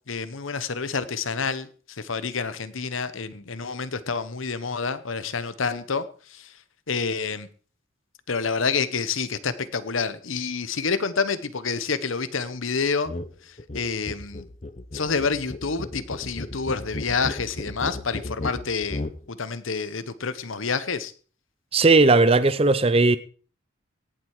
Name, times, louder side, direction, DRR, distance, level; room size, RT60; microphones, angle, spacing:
voice 1, 0.1-6.5 6.9-7.5 8.3-13.1 13.4-14.5 14.9-19.0 19.3-21.1, left 5 dB, 80° left, 1.0 m, -28 dB
sound 1, 13.0-13.3 13.6-19.2, left 2 dB, 35° left, 0.8 m, -35 dB
voice 2, 21.7-23.2, right 3 dB, 30° right, 0.6 m, -17 dB
17.5 x 7.6 x 4.8 m
head